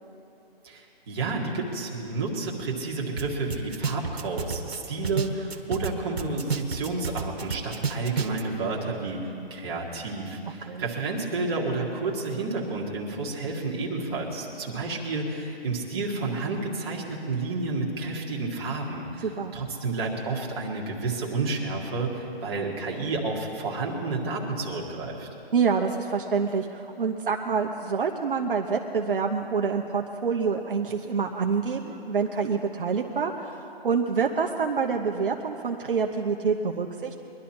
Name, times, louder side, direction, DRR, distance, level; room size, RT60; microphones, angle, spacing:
voice 1, 0.6-25.3, right 3 dB, 25° right, -3 dB, 1.8 m, -30 dB
sound 1, 3.2-3.3 3.5-5.9 6.2-8.4, right 5 dB, 90° right, 1.3 m, -29 dB
voice 2, 19.2-19.5 25.5-37.2, right 5 dB, 60° right, 2 dB, 0.9 m, -27 dB
22.0 x 11.5 x 4.4 m, 2.8 s
hypercardioid pair, 165°, 31 cm